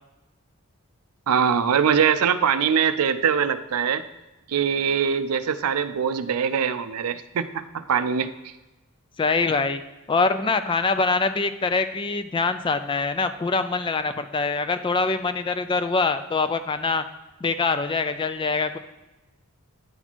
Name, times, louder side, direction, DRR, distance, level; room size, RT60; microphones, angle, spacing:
voice 1, 1.3-4.0 4.5-8.3, right 7 dB, 80° right, 11 dB, 0.5 m, -22 dB
voice 2, 9.2-9.8 10.1-17.0 17.4-18.8, left 4 dB, 20° left, 10 dB, 0.3 m, -24 dB
9.8 x 4.2 x 4.5 m, 1.1 s
head